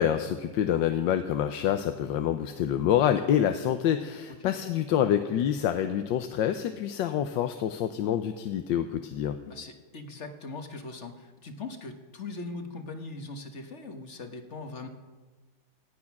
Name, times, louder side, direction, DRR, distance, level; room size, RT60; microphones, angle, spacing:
voice 1, 0.0-9.4, left 10 dB, 80° left, 8 dB, 1.4 m, -27 dB
voice 2, 9.5-14.9, left 3 dB, 40° left, 6 dB, 1.4 m, -40 dB
18.0 x 12.5 x 6.0 m, 1.3 s
omnidirectional pair, 2.0 m